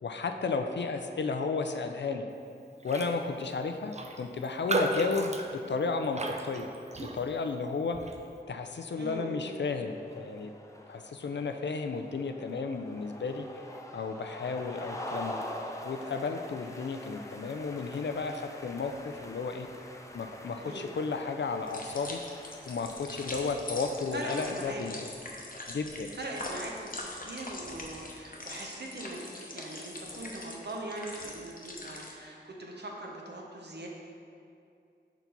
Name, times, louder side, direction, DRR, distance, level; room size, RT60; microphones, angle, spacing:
voice 1, 0.0-2.3 2.8-8.0 8.5-10.5 10.9-13.4 13.9-15.4 15.8-19.7 20.1-22.2 22.7-25.1 25.7-26.1, left 4 dB, 70° left, 6 dB, 0.4 m, -33 dB
Raindrop, 2.8-3.2 3.4-3.5 3.9-7.5 7.9-8.2, right 3 dB, 35° right, 0.5 m, -34 dB
voice 2, 9.0-9.7 20.6-20.9 24.1-24.8 26.1-33.9, right 2 dB, 65° right, -1 dB, 0.9 m, -41 dB
sound 1, 9.4-25.1, left 1 dB, 15° left, 0.5 m, -45 dB
sound 2, 21.7-32.1, left 2 dB, 50° left, 0.8 m, -42 dB
5.8 x 4.4 x 4.0 m, 2.5 s
wide cardioid pair, 55°, 19 cm